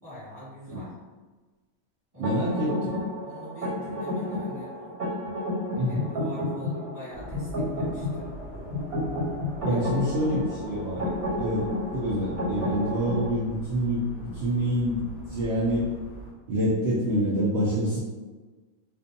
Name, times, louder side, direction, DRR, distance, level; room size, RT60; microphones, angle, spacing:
voice 1, 0.0-0.9 2.1-2.6 3.3-5.0 5.8-8.9 9.7-9.8 11.0-11.2, equal, 15° right, -11 dB, 1.2 m, -44 dB
voice 2, 2.2-3.1 5.8-6.1 9.6-11.0 11.3-15.0 15.3-15.9 16.5-18.0, equal, 65° right, -7 dB, 0.6 m, -27 dB
sound 1, 2.2-13.3, left 1 dB, 85° right, 1.4 m, -31 dB
sound 2, 7.1-16.3, equal, 65° left, 0.7 m, -43 dB
2.5 x 2.3 x 2.5 m, 1.3 s
omnidirectional pair, 1.5 m